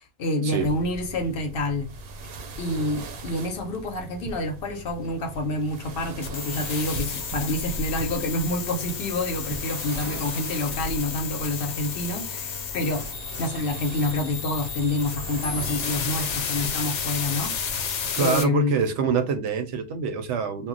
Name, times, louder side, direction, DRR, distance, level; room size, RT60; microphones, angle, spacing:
voice 1, 0.0-1.9 2.6-13.1 13.4-17.9 18.2-18.8, left 1 dB, 60° left, 0.7 m, -28 dB
sound 1, 0.6-18.2, right 2 dB, 65° right, 0.7 m, -39 dB
sound 2, 6.2-18.4, left 6 dB, 85° left, 0.9 m, -32 dB
voice 2, 18.1-20.7, right 5 dB, 90° right, 0.9 m, -25 dB
2.2 x 2.0 x 3.7 m
omnidirectional pair, 1.2 m